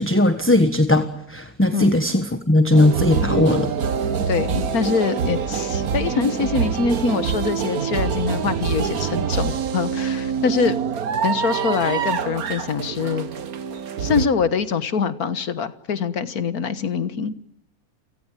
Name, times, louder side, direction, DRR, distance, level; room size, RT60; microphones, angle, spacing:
voice 1, 0.0-3.7, left 1 dB, 10° left, 9 dB, 1.3 m, -18 dB
sound 1, 2.7-14.3, right 7 dB, 75° right, 1.8 m, -25 dB
voice 2, 4.3-10.8 11.2-13.3 14.0-17.3, left 5 dB, 80° left, 13 dB, 1.8 m, -24 dB
30.0 x 17.5 x 9.0 m, 0.69 s
omnidirectional pair, 1.6 m